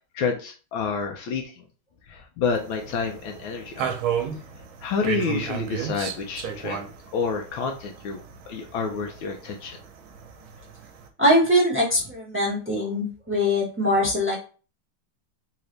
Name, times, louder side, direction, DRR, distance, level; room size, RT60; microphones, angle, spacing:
voice 1, 0.1-1.4 2.1-3.9 4.8-6.8 7.1-9.8, left 5 dB, 75° left, 3 dB, 1.3 m, -29 dB
sound 1, 2.4-11.1, right 8 dB, 85° right, 1.5 m, -34 dB
voice 2, 11.2-14.4, equal, 10° right, -4 dB, 0.8 m, -22 dB
4.0 x 2.8 x 3.2 m, 0.36 s
omnidirectional pair, 2.3 m